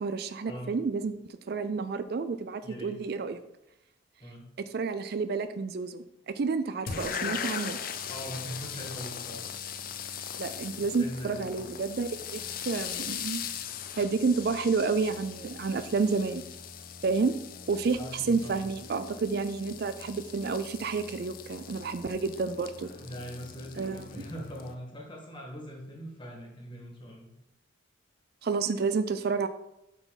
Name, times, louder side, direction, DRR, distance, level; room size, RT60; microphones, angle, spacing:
voice 1, 0.0-3.4 4.7-7.8 10.4-13.4 14.0-16.4 17.0-17.3 17.7-22.9 23.8-24.2 28.4-29.5, right 4 dB, 50° right, 11 dB, 0.4 m, -30 dB
voice 2, 2.6-3.0 4.2-4.5 8.1-9.5 10.7-11.6 18.0-18.7 22.8-27.3, equal, 25° left, -1 dB, 1.9 m, -42 dB
sound 1, 6.9-24.7, left 7 dB, 45° left, 0.6 m, -40 dB
8.0 x 5.9 x 4.0 m, 0.88 s
head